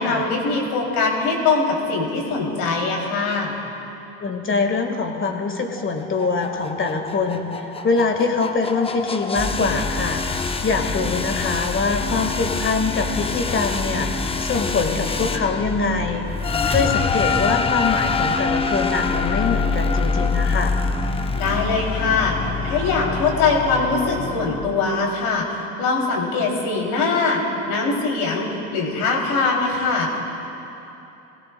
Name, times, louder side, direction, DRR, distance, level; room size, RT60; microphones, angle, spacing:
voice 1, 0.0-3.6 21.3-30.2, left 4 dB, 75° left, -1 dB, 3.0 m, -22 dB
voice 2, 4.2-10.2 10.6-16.3 16.7-20.7, left 4 dB, 30° left, 4 dB, 1.6 m, -24 dB
sound 1, 5.8-24.6, left 4 dB, 15° left, 0.6 m, -25 dB
20.5 x 16.5 x 2.2 m, 3.0 s
hypercardioid pair, 80°, 41 cm